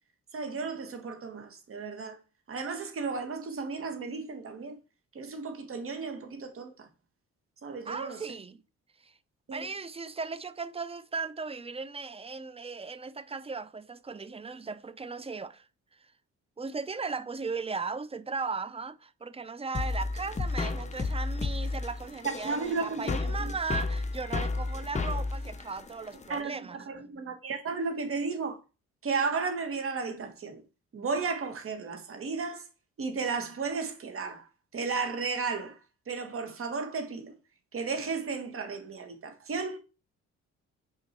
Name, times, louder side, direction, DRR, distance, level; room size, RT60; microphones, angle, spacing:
voice 1, 0.3-2.2 2.5-4.8 5.1-6.9 7.6-8.3 9.5-9.7 22.2-23.5 26.3-28.6 29.0-30.6 30.9-32.7 33.0-35.8 36.1-37.3 37.7-39.8, right 4 dB, 45° right, 1.5 m, -34 dB
voice 2, 7.8-8.6 9.0-9.1 9.5-15.7 16.6-26.8, right 4 dB, 20° right, 0.5 m, -37 dB
sound 1, 19.7-26.4, left 3 dB, 25° left, 0.8 m, -32 dB
5.9 x 4.8 x 4.4 m
cardioid pair, 90°, 30 cm